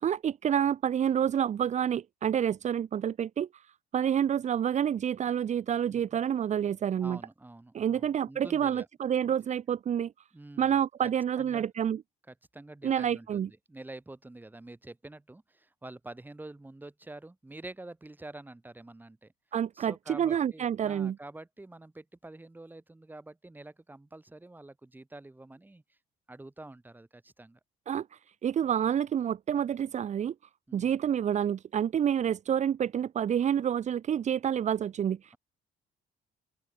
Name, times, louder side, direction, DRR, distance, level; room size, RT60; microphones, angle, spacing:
voice 1, 0.0-3.7 3.9-7.2 7.7-10.1 10.6-12.0 12.8-13.5 19.5-21.2 27.9-30.3 30.7-35.3, right 9 dB, 45° right, 1.1 m, -28 dB
voice 2, 5.9-6.2 7.0-8.9 10.3-11.1 11.4-11.7 12.3-19.3 19.7-26.0 26.3-27.6 30.7-31.0, right 2 dB, 10° right, 5.3 m, -47 dB
open air
cardioid pair, 110°, 17 cm